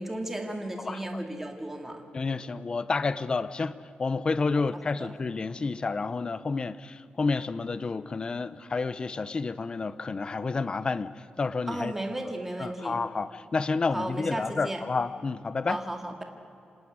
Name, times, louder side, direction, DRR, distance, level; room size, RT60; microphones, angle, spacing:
voice 1, 0.0-2.0 4.5-4.6 5.0-5.1 11.7-13.0 13.9-14.9 15.7-16.2, right 1 dB, 10° right, 3 dB, 2.0 m, -34 dB
voice 2, 2.1-11.9 12.6-15.8, left 4 dB, 30° left, 15 dB, 0.7 m, -30 dB
27.0 x 18.5 x 9.5 m, 2.6 s
wide cardioid pair, 175°, 3 cm